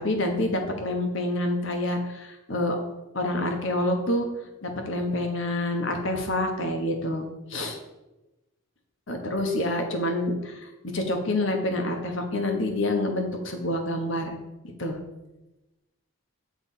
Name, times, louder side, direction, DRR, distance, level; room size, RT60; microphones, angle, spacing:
voice 1, 0.0-2.8 3.1-4.3 4.6-7.8 9.1-14.4 14.8-15.0, left 1 dB, 60° left, 4 dB, 1.1 m, -27 dB
8.4 x 3.4 x 5.5 m, 1.0 s
head